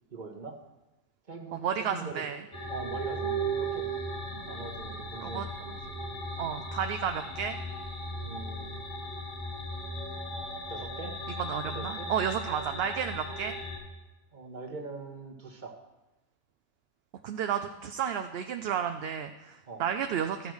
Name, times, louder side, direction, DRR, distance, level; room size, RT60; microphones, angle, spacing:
voice 1, 0.1-0.6 1.3-2.2 2.7-3.9 4.5-6.0 8.2-8.8 10.7-11.1 11.6-12.1 13.2-13.4 14.3-15.7 19.7-19.8, right 4 dB, 40° right, 3 dB, 1.3 m, -42 dB
voice 2, 1.5-2.4 4.4-4.5 5.2-5.5 6.4-7.6 11.4-13.5 17.2-20.5, right 8 dB, 65° right, 7 dB, 0.7 m, -32 dB
sound 1, 2.5-13.8, right 1 dB, 85° left, 3.2 m, -36 dB
14.0 x 5.2 x 6.3 m, 1.0 s
omnidirectional pair, 1.3 m